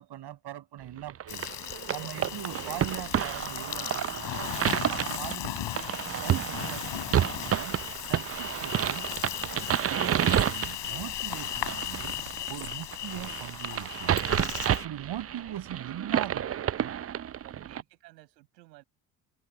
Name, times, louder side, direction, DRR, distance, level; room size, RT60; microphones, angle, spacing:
voice 1, 0.0-1.5 1.9-4.5 4.9-5.7 6.2-7.8 8.1-9.1 9.5-12.2 12.5-14.3 14.6-17.0, right 12 dB, 55° right, 7.3 m, -40 dB
voice 2, 0.8-1.2 17.4-18.8, right 20 dB, 80° right, 6.6 m, -54 dB
sound 1, 1.1-17.8, right 10 dB, 30° right, 0.7 m, -30 dB
Insect, 1.3-14.9, left 14 dB, 60° left, 5.1 m, -37 dB
hypercardioid pair, 60°, 48 cm